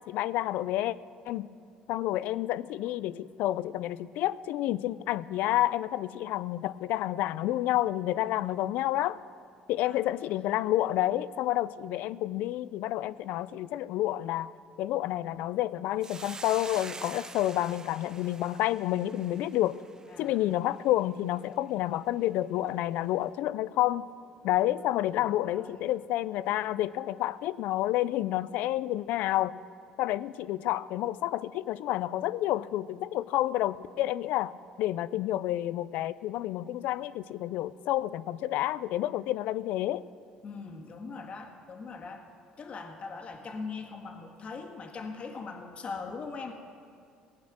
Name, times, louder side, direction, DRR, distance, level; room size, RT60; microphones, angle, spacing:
voice 1, 0.1-1.0 1.3-1.5 1.9-9.2 9.7-14.5 14.8-19.8 20.2-24.0 24.4-29.5 30.0-34.5 34.8-40.0, left 14 dB, 75° left, 18 dB, 0.4 m, -29 dB
Hiss, 16.0-20.5, right 4 dB, 25° right, 0.6 m, -45 dB
voice 2, 20.1-20.4 25.2-25.9 40.4-42.2 42.6-46.6, left 4 dB, 45° left, 4 dB, 1.7 m, -41 dB
17.5 x 8.6 x 6.2 m, 2.3 s
supercardioid pair, 85°, 3 cm